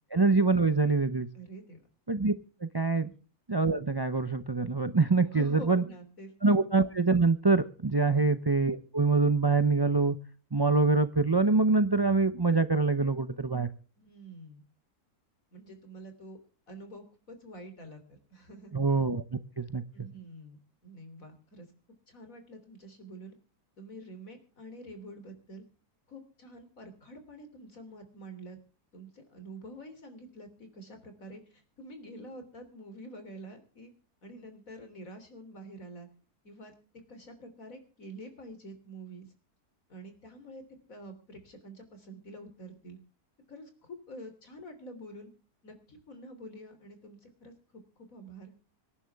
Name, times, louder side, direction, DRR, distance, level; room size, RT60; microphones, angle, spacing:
voice 1, 0.1-1.3 2.1-2.3 2.6-3.1 3.5-5.8 6.4-10.2 10.5-13.7 18.7-19.2 19.6-19.8, right 3 dB, 30° right, 12 dB, 0.4 m, -25 dB
voice 2, 1.3-1.8 3.0-3.1 5.3-6.3 8.1-8.3 14.0-14.6 15.5-16.4 16.7-18.0 18.3-18.8 19.9-20.6 20.8-21.7 22.1-23.3 23.8-25.6 26.1-28.6 28.9-31.4 31.8-33.9 34.2-36.1 36.4-36.7 37.1-39.3 39.9-40.6 40.9-43.0 43.5-45.3 45.6-47.5 48.1-48.5, right 1 dB, 60° left, 7 dB, 3.8 m, -47 dB
25.5 x 11.0 x 3.5 m, 0.38 s
omnidirectional pair, 1.6 m